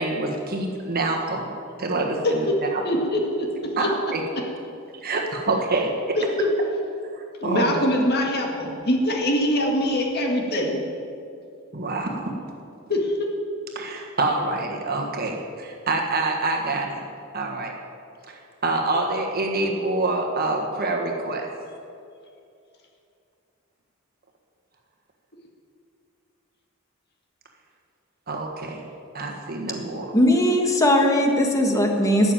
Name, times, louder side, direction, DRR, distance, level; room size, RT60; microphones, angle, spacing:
voice 1, 0.0-1.4 1.8-2.5 3.8-4.2 5.0-5.9 7.4-7.9 11.7-12.3 13.7-17.0 17.3-17.7 18.3-18.4 18.6-21.5 28.3-28.8 29.1-30.1, right 2 dB, 45° right, 2 dB, 1.5 m, -26 dB
voice 2, 2.2-2.6 2.8-3.9 6.2-6.5 7.4-10.8 12.9-13.3, left 1 dB, 50° left, 1 dB, 1.9 m, -23 dB
voice 3, 30.1-32.3, left 1 dB, 15° left, 2 dB, 1.5 m, -19 dB
12.0 x 7.2 x 8.9 m, 2.5 s
head